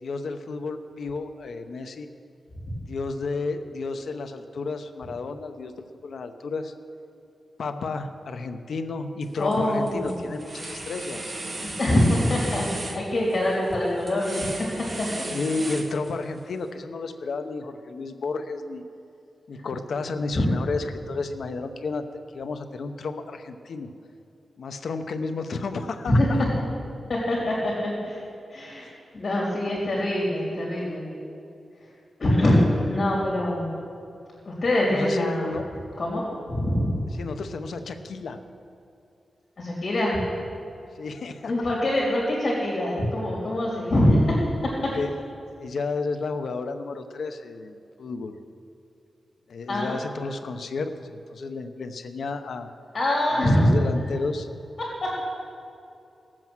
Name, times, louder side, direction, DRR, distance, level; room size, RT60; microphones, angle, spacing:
voice 1, 0.0-2.1 2.9-6.7 7.6-11.3 15.3-18.8 19.5-22.1 22.3-23.9 24.6-26.4 28.8-29.0 34.9-35.7 37.2-38.4 41.0-41.5 44.9-45.2 45.6-48.4 49.5-52.7 53.3-54.5, left 3 dB, 70° left, 7 dB, 0.8 m, -32 dB
sound 1, 9.2-9.6 9.9-16.4, right 2 dB, 35° right, 1.2 m, -36 dB
voice 2, 9.4-10.3 11.6-14.7 15.0-15.1 20.3-20.5 26.0-26.3 27.1-28.2 28.5-31.1 32.2-33.7 34.4-35.5 36.0-37.0 39.6-40.2 41.5-44.4 49.7-49.9 52.9-53.7 55.0-55.1, left 1 dB, 40° left, -4 dB, 3.0 m, -24 dB
17.5 x 7.7 x 6.1 m, 2.6 s
wide cardioid pair, 150°, 0 cm